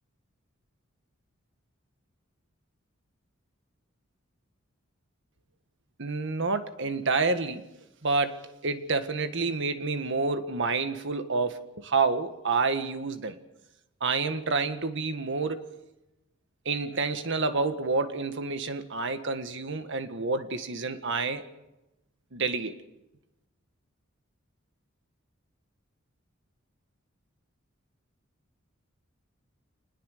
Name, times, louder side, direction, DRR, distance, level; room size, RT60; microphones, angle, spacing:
voice 1, 6.0-7.6 8.0-13.4 14.0-15.6 16.6-21.5 22.3-22.8, right 4 dB, 65° right, 9 dB, 1.7 m, -28 dB
26.5 x 20.0 x 6.7 m, 0.95 s
head